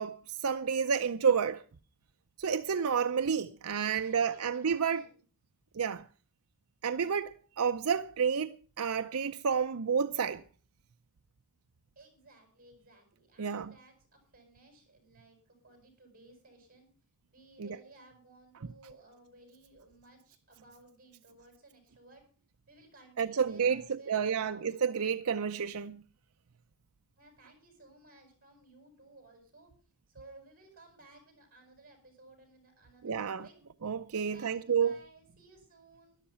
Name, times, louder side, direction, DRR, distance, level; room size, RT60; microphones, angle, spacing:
voice 1, 0.0-1.6 2.4-5.0 5.7-6.0 6.8-10.4 13.4-13.7 17.6-17.7 23.2-26.0 33.0-33.4 33.8-34.9, right 6 dB, 80° right, 0.6 m, -30 dB
voice 2, 3.6-5.1 12.0-15.4 15.6-16.9 17.3-22.3 22.7-24.7 27.2-29.7 30.1-33.5 34.1-36.2, right 2 dB, 40° right, 7.3 m, -58 dB
13.0 x 11.5 x 5.7 m
head